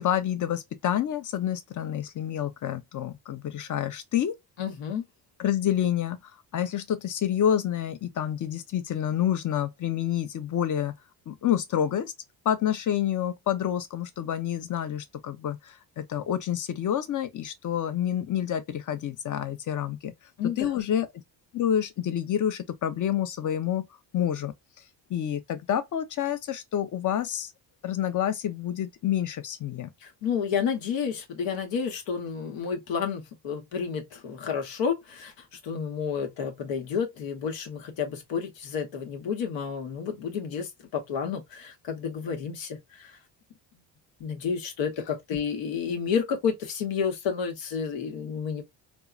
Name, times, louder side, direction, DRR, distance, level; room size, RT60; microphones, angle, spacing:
voice 1, 0.0-4.4 5.4-11.0 11.3-12.1 12.4-20.1 20.6-21.1 21.5-23.9 24.1-24.5 25.1-27.5 27.8-29.9, left 10 dB, 45° left, 0.7 m, -28 dB
voice 2, 4.6-5.0 20.4-20.8 30.0-43.2 44.2-48.6, left 6 dB, 85° left, 1.1 m, -30 dB
3.5 x 2.1 x 2.4 m
cardioid pair, 95°, 44 cm